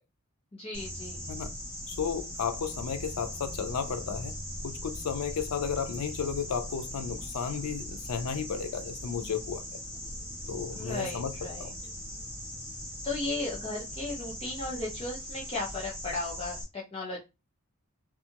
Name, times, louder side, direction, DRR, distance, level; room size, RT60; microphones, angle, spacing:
voice 1, 0.5-1.3 10.7-11.7 13.0-17.2, left 2 dB, 25° left, 0.7 m, -35 dB
sound 1, 0.7-16.6, equal, 10° right, 1.7 m, -40 dB
voice 2, 1.9-4.4 4.6-9.8 10.5-11.7, left 6 dB, 85° left, 0.4 m, -33 dB
2.8 x 2.3 x 2.8 m
head